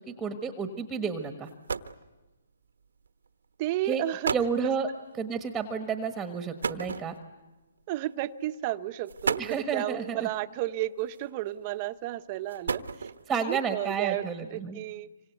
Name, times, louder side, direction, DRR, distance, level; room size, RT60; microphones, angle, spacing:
voice 1, 0.1-1.5 3.8-4.0 4.3-4.9 5.2-7.1 9.4-10.3 13.3-14.8, right 6 dB, 10° right, 8 dB, 1.5 m, -31 dB
sound 1, 1.1-1.2 1.4-2.1 3.1-3.3 3.9-4.0 4.2-4.6 6.6-7.5 8.4-8.6 9.1-9.7 11.0-11.5 12.3-13.4, right 5 dB, 85° right, 1.3 m, -33 dB
voice 2, 3.6-4.3 4.6-4.7 7.9-15.1, right 15 dB, 30° right, 10 dB, 1.0 m, -33 dB
26.5 x 25.5 x 8.2 m, 1.1 s
hypercardioid pair, 150°, 0 cm